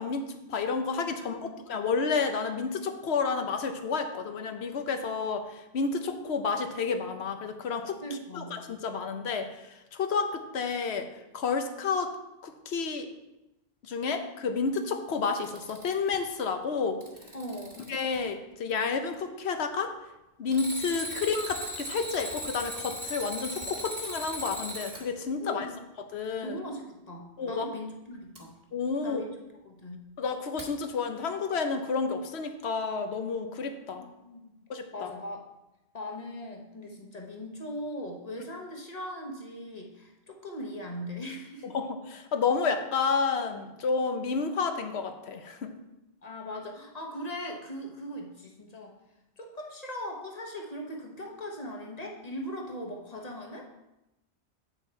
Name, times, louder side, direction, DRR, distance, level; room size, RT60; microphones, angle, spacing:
voice 1, 0.0-8.0 8.3-11.1 11.3-12.1 12.4-13.1 13.8-17.0 17.9-19.9 20.4-25.7 26.0-26.6 27.4-27.7 28.7-29.2 30.2-34.0 34.7-35.1 41.6-45.7, left 5 dB, 75° left, 7 dB, 1.1 m, -30 dB
voice 2, 1.2-1.6 8.0-8.5 17.3-17.8 25.4-25.8 26.4-28.5 29.0-29.4 29.6-30.0 34.0-34.6 34.9-35.5 35.9-41.7 46.2-48.9 49.4-53.7, equal, 40° left, 0 dB, 1.3 m, -39 dB
Alarm, 15.2-16.1 16.8-18.2 20.5-25.0 28.3-28.4 30.6-30.7, equal, 30° right, 1.5 m, -38 dB
8.2 x 6.1 x 4.4 m, 0.94 s
omnidirectional pair, 1.1 m